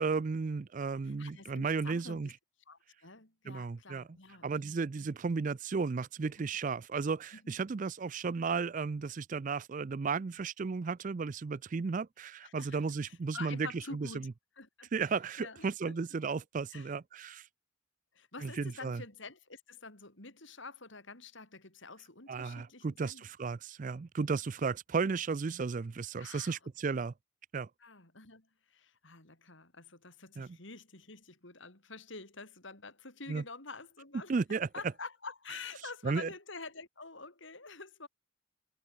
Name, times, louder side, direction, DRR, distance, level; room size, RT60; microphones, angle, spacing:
voice 1, 0.0-2.3 3.5-4.0 4.4-14.1 14.9-17.5 18.4-19.0 22.3-27.1 27.5-27.7 30.4-30.5 33.3-33.4 34.3-34.7 36.0-36.3, right 4 dB, 40° right, 0.4 m, -34 dB
voice 2, 1.0-2.3 2.7-4.8 7.3-7.6 12.4-14.3 14.6-16.0 16.7-16.9 18.1-23.2 26.2-27.0 27.8-38.1, left 4 dB, 65° left, 4.4 m, -48 dB
head